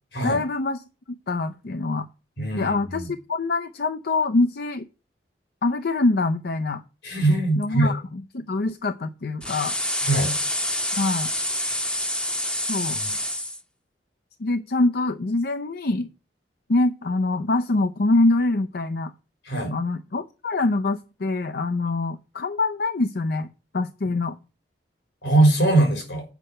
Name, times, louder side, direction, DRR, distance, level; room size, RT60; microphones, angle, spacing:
voice 1, 0.2-0.8 1.3-2.1 2.5-4.9 5.6-6.8 7.6-8.0 8.3-9.8 11.0-11.3 12.7-13.0 14.4-16.1 16.7-19.1 19.7-23.5 23.7-24.4, left 2 dB, 60° left, 10 dB, 0.6 m, -24 dB
voice 2, 2.4-3.1 7.0-7.9 10.0-10.3 11.6-11.8 12.9-13.1 19.4-19.8 25.2-26.2, right 2 dB, 85° left, 3 dB, 4.3 m, -22 dB
sound 1, 9.4-13.6, left 1 dB, 5° left, 0.8 m, -27 dB
8.2 x 5.5 x 7.8 m, 0.33 s
head